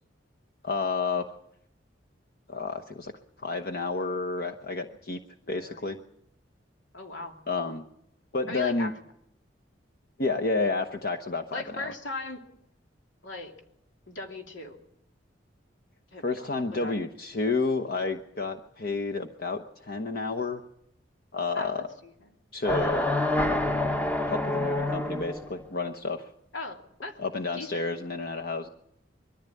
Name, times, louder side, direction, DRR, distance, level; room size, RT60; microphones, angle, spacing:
voice 1, 0.6-1.3 2.5-3.1 3.4-5.2 5.5-6.0 7.5-7.8 8.3-8.9 10.2-11.9 16.2-20.6 21.3-21.9 22.5-23.1 24.3-26.3 27.2-28.7, left 3 dB, 55° left, 4 dB, 1.0 m, -30 dB
voice 2, 5.4-6.0 6.9-7.4 8.5-8.9 11.5-12.4 13.2-13.5 14.1-14.8 16.1-16.9 21.5-22.1 26.5-27.2 27.5-27.8, left 2 dB, 90° left, 3 dB, 2.8 m, -39 dB
sound 1, 22.6-25.5, left 1 dB, 10° left, 0.8 m, -27 dB
22.5 x 14.5 x 8.5 m, 0.75 s
head